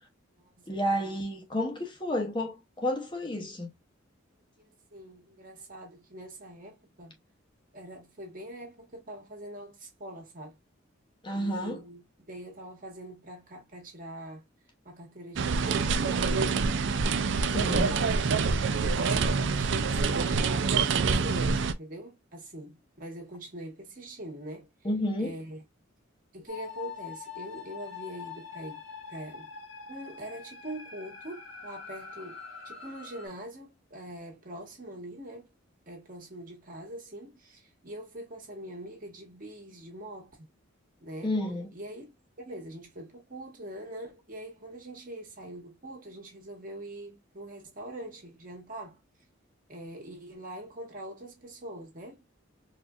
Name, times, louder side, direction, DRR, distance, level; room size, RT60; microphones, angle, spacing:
voice 1, 0.7-3.7 11.2-11.8 17.5-17.9 24.8-25.4 41.2-41.7, left 1 dB, 25° left, 0.7 m, -31 dB
voice 2, 4.6-7.1 7.7-10.6 11.3-14.4 14.8-16.5 17.5-18.2 18.8-24.7 25.2-25.6 26.3-28.8 29.1-29.5 29.9-32.4 32.6-35.5 35.9-40.5 41.0-41.3 41.7-42.1 42.4-49.0 49.7-52.2, right 1 dB, 45° right, 1.5 m, -43 dB
sound 1, 15.4-21.7, right 4 dB, 65° right, 0.4 m, -26 dB
sound 2, 26.5-33.3, left 6 dB, 80° left, 1.7 m, -44 dB
4.3 x 2.6 x 2.3 m
head